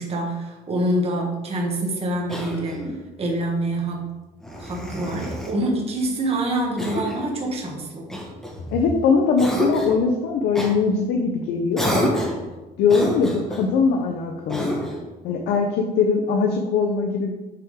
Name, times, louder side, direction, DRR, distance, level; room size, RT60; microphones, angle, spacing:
voice 1, 0.0-2.8 3.2-4.1 4.6-8.1, right 1 dB, 35° right, 0 dB, 1.3 m, -26 dB
Cough, 2.3-3.0 4.4-5.6 6.8-7.3 8.1-8.9 9.4-10.0 10.5-10.7 11.7-12.5 12.9-13.7 14.5-15.1, equal, 5° left, 1.3 m, -28 dB
voice 2, 8.7-12.2 12.8-14.9 15.2-17.3, left 5 dB, 80° left, 2 dB, 0.7 m, -21 dB
5.7 x 3.7 x 4.9 m, 1.1 s
cardioid pair, 110°, 17 cm